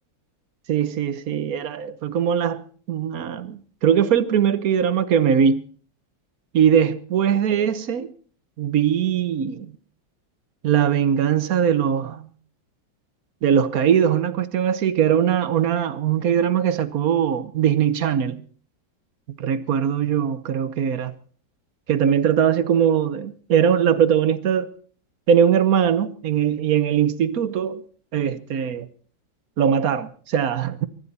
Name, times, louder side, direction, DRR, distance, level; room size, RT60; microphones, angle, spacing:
voice 1, 0.7-2.6 2.9-5.6 6.5-8.1 8.6-9.7 10.6-12.3 13.4-18.4 19.3-21.1 21.9-24.7 25.3-27.8 28.1-28.9 29.6-30.9, right 8 dB, 55° right, 1.3 m, -21 dB
24.0 x 12.0 x 4.2 m
omnidirectional pair, 2.0 m